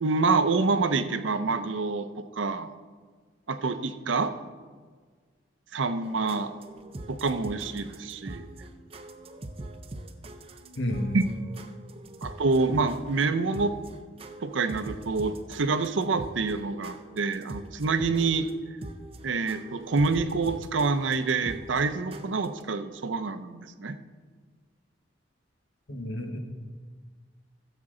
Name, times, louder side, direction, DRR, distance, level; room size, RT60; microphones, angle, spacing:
voice 1, 0.0-2.7 3.5-4.3 5.7-6.5 7.1-8.5 11.1-11.2 12.2-13.7 14.4-18.5 19.2-24.0, right 4 dB, 80° right, 10 dB, 0.6 m, -27 dB
sound 1, 6.0-22.6, right 1 dB, 30° right, 0.6 m, -43 dB
voice 2, 10.8-11.2 25.9-26.4, left 1 dB, 85° left, 4 dB, 1.3 m, -31 dB
13.5 x 7.3 x 3.8 m, 1.5 s
head